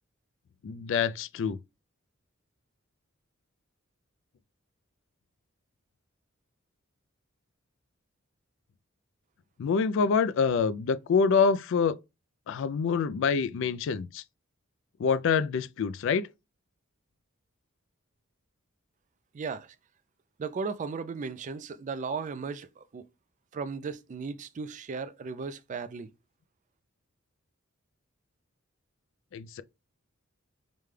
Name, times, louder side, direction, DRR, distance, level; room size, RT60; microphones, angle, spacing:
voice 1, 0.6-1.6 9.6-12.0 12.5-14.2 15.0-16.3 29.3-29.6, left 5 dB, 60° left, 0.3 m, -26 dB
voice 2, 19.3-19.8 20.4-23.1 23.5-26.1, right 5 dB, 35° right, 0.3 m, -36 dB
5.1 x 2.2 x 3.2 m
head